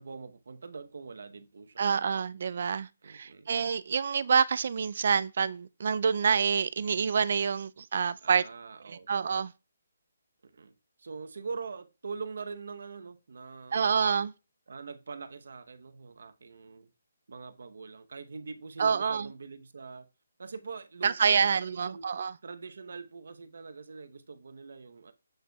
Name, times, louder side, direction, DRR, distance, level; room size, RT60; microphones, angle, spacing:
voice 1, 0.0-1.8 3.0-3.5 8.2-9.3 10.4-14.0 14.7-16.9 17.3-20.1 20.4-22.1 22.4-25.1, right 4 dB, 65° right, 0.9 m, -43 dB
voice 2, 1.8-8.4 8.9-9.5 13.7-14.3 18.8-19.3 21.0-22.3, right 6 dB, 50° right, 0.3 m, -27 dB
7.9 x 6.5 x 2.3 m
hypercardioid pair, 170°, 0 cm